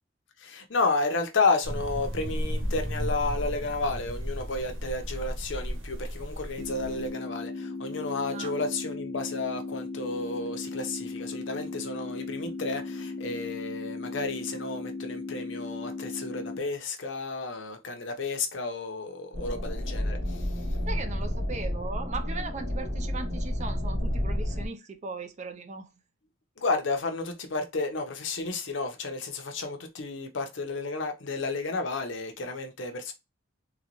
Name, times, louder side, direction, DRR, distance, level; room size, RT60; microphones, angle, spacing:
voice 1, 0.4-20.8 26.6-33.1, left 3 dB, 65° left, 0.7 m, -32 dB
sound 1, 1.6-7.1, equal, 80° right, 1.2 m, -34 dB
sound 2, 6.6-16.6, left 3 dB, 35° left, 0.6 m, -37 dB
sound 3, 19.3-24.7, equal, 55° right, 1.4 m, -30 dB
voice 2, 20.9-25.9, right 3 dB, 35° right, 0.5 m, -38 dB
3.9 x 2.2 x 3.0 m
head